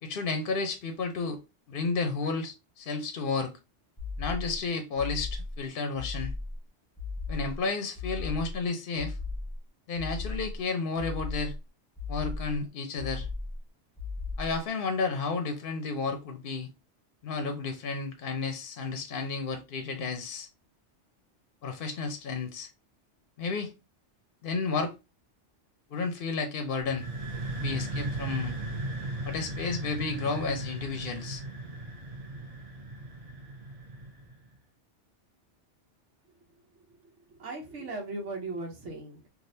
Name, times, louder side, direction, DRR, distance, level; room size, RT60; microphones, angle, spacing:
voice 1, 0.0-1.4 1.7-3.5 4.2-6.3 7.3-9.2 9.9-11.5 12.1-13.3 14.4-16.7 17.2-20.5 21.6-22.7 23.4-23.7 24.4-24.9 25.9-27.1 27.6-28.6 29.2-31.4, left 4 dB, 60° left, 0.7 m, -32 dB
sound 1, 4.0-4.6 5.0-5.6 6.0-6.6 7.0-7.6 8.0-8.6 9.0-9.6 10.0-10.6 11.0-11.6 12.0-12.6 13.0-13.6 14.0-14.6, left 3 dB, 5° left, 1.0 m, -36 dB
sound 2, 26.8-34.5, right 2 dB, 35° right, 0.7 m, -37 dB
voice 2, 37.0-39.3, right 2 dB, 85° right, 1.2 m, -38 dB
3.4 x 2.5 x 2.6 m
omnidirectional pair, 1.2 m